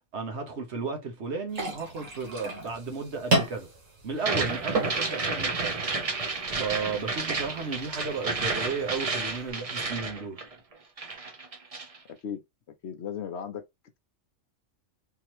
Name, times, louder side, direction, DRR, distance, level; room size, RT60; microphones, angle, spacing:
voice 1, 0.1-3.7 4.0-5.8 6.5-10.4, right 4 dB, 60° right, 1.3 m, -34 dB
sound 1, 1.5-9.5, right 2 dB, 90° right, 1.7 m, -34 dB
sound 2, 4.2-10.7 11.0-12.0, right 3 dB, 35° right, 0.6 m, -31 dB
voice 2, 12.1-12.4 12.8-13.6, left 8 dB, 65° left, 0.9 m, -36 dB
3.7 x 2.9 x 3.0 m
omnidirectional pair, 1.3 m